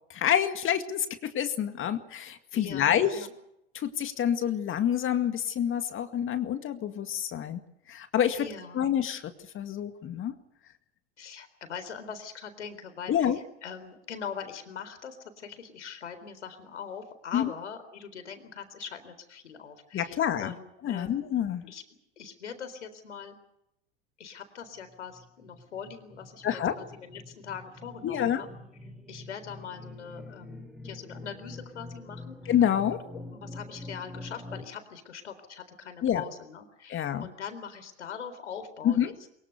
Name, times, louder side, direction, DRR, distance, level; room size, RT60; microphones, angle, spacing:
voice 1, 0.1-3.1 3.7-7.6 7.9-8.5 8.8-10.3 13.1-13.4 17.3-17.5 19.9-20.5 20.8-21.6 26.4-26.7 28.0-28.4 32.5-33.0 36.0-36.2 36.9-37.3 38.8-39.1, left 9 dB, 35° left, 8 dB, 2.1 m, -27 dB
voice 2, 2.5-3.3 8.4-8.9 11.2-21.3 21.6-21.8 22.2-23.4 24.2-28.5 29.1-32.5 32.9-33.0 33.3-39.2, left 7 dB, 90° left, 10 dB, 4.1 m, -42 dB
sound 1, 24.9-34.6, left 2 dB, ahead, 3.8 m, -45 dB
23.5 x 22.5 x 6.8 m, 0.79 s
hypercardioid pair, 95°, 34 cm